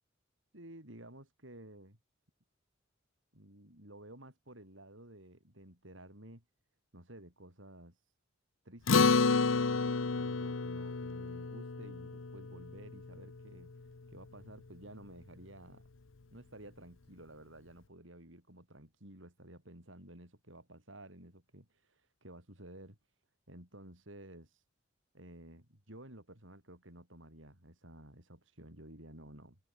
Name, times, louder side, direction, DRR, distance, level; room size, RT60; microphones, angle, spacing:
voice 1, 0.5-2.0 3.3-6.4 6.9-8.0 8.6-13.7 14.1-15.8 16.3-23.0 23.5-24.6 25.1-29.6, right 1 dB, 70° right, 7.2 m, -53 dB
Acoustic guitar, 8.9-13.6, left 4 dB, 80° left, 0.9 m, -30 dB
head